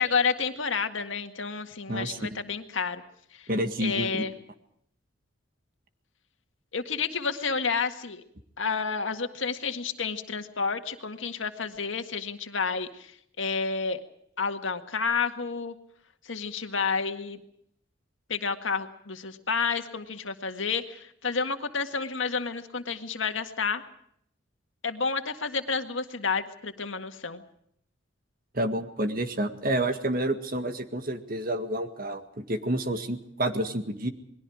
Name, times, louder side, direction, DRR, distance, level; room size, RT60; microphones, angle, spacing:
voice 1, 0.0-3.0 3.3-3.5 3.8-4.3 6.7-8.2 8.6-13.1 13.4-14.0 14.4-15.8 16.2-17.4 18.3-23.8 24.8-27.4, left 5 dB, 80° left, 7 dB, 1.9 m, -30 dB
voice 2, 1.9-2.4 3.5-4.2 28.5-34.1, right 1 dB, 45° right, 8 dB, 1.9 m, -29 dB
28.5 x 21.5 x 5.0 m, 0.69 s
head